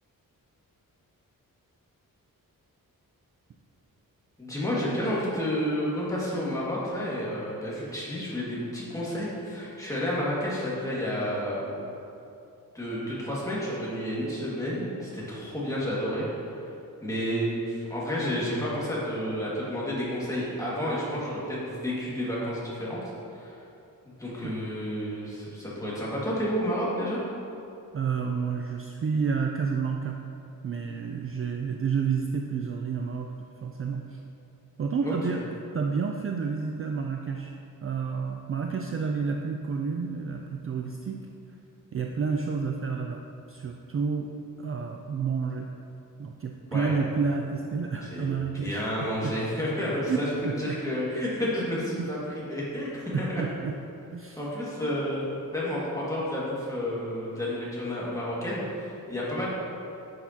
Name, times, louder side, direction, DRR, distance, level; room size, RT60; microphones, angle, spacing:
voice 1, 4.4-11.8 12.7-16.2 17.0-23.0 23.4-23.6 24.1-27.2 35.0-35.1 46.7-47.0 48.0-50.3 50.6-53.4 54.4-59.5, equal, 10° left, -7 dB, 1.9 m, -30 dB
voice 2, 27.9-30.2 30.6-33.3 33.6-34.2 34.8-35.4 35.7-37.5 37.8-41.3 41.9-43.2 43.5-44.3 44.6-45.7 46.2-48.8 49.2-49.3 50.1-50.7 52.0-52.1 53.1-53.8 54.1-54.4, right 5 dB, 40° right, 2 dB, 0.4 m, -30 dB
10.0 x 6.5 x 2.8 m, 2.7 s
wide cardioid pair, 155°, 35 cm